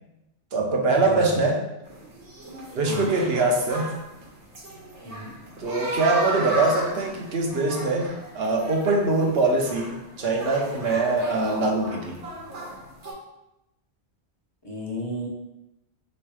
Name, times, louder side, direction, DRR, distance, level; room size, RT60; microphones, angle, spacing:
voice 1, 0.5-1.6 2.7-4.0 5.6-12.2, right 2 dB, 65° right, 1 dB, 1.0 m, -23 dB
voice 2, 1.1-1.5 2.9-3.1 5.1-5.3 14.6-15.3, equal, 25° left, -2 dB, 0.7 m, -34 dB
sound 1, 1.8-13.1, right 1 dB, 85° right, 1.4 m, -35 dB
3.4 x 3.1 x 4.7 m, 0.91 s
omnidirectional pair, 1.1 m